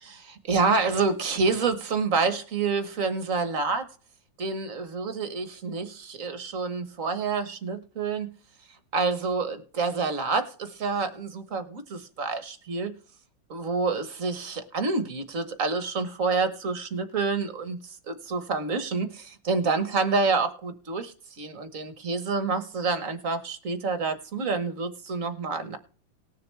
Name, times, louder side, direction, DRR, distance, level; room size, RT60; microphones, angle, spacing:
voice 1, 0.0-3.9 4.4-8.3 8.9-12.9 13.5-25.8, right 4 dB, 45° right, 10 dB, 1.5 m, -28 dB
19.5 x 6.7 x 3.2 m, 0.39 s
omnidirectional pair, 2.1 m